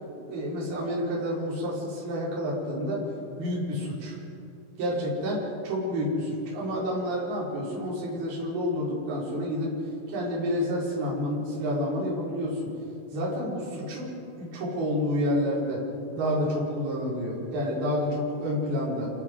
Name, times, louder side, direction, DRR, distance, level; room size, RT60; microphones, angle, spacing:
voice 1, 0.2-3.0 3.4-4.2 4.8-9.8 10.1-12.7 13.1-15.8 16.1-19.1, equal, 50° right, -6 dB, 6.5 m, -29 dB
30.0 x 18.5 x 5.4 m, 2.7 s
omnidirectional pair, 5.7 m